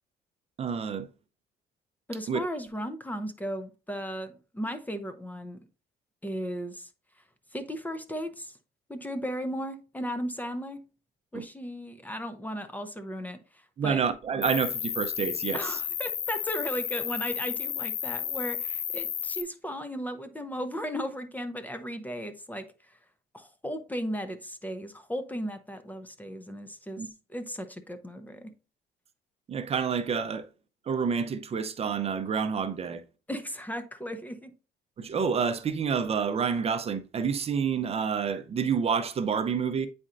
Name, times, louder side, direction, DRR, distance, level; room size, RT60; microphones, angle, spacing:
voice 1, 0.6-1.1 2.3-2.4 11.3-11.4 13.8-15.8 27.0-27.1 29.5-30.5 30.9-33.0 35.0-39.9, right 6 dB, 35° right, 0.7 m, -28 dB
voice 2, 2.1-5.6 6.2-6.9 7.5-8.6 8.9-10.8 11.3-14.0 15.5-22.6 22.9-23.0 23.3-27.0 27.3-28.5 33.3-34.5, equal, 10° left, 0.7 m, -36 dB
Cricket, 14.4-19.4, left 9 dB, 55° left, 0.7 m, -32 dB
8.7 x 4.3 x 2.5 m
cardioid pair, 110°, 17 cm